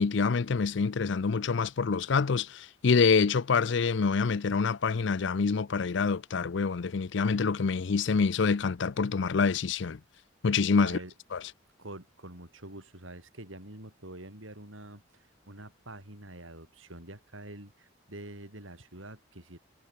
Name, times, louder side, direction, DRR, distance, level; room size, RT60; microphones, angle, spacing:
voice 1, 0.0-10.0 10.4-11.0 11.3-11.4, left 5 dB, 65° left, 0.5 m, -26 dB
voice 2, 10.8-11.1 11.8-19.6, right 1 dB, 90° right, 7.3 m, -46 dB
head